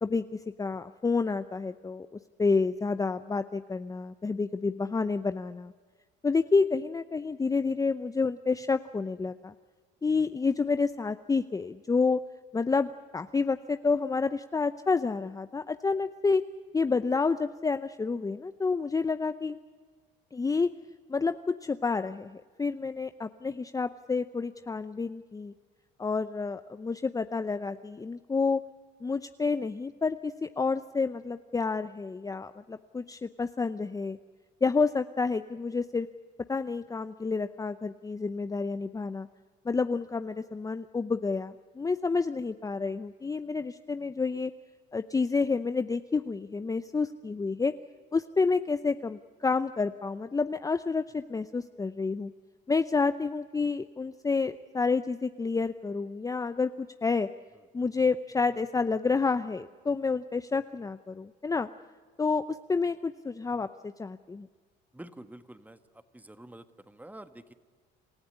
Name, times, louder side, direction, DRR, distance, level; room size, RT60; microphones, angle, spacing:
voice 1, 0.0-2.1 2.4-5.7 6.2-9.5 10.0-12.2 12.5-16.4 16.7-19.6 20.3-20.7 21.1-25.5 26.0-28.6 29.0-34.2 34.6-36.1 36.5-39.3 39.6-44.5 44.9-47.7 48.1-52.3 52.7-57.3 57.7-61.7 62.2-64.5, left 4 dB, 15° left, 11 dB, 0.7 m, -29 dB
voice 2, 64.9-67.5, right 1 dB, 10° right, 10 dB, 1.5 m, -48 dB
27.5 x 14.5 x 10.0 m, 1.5 s
supercardioid pair, 90°, 20 cm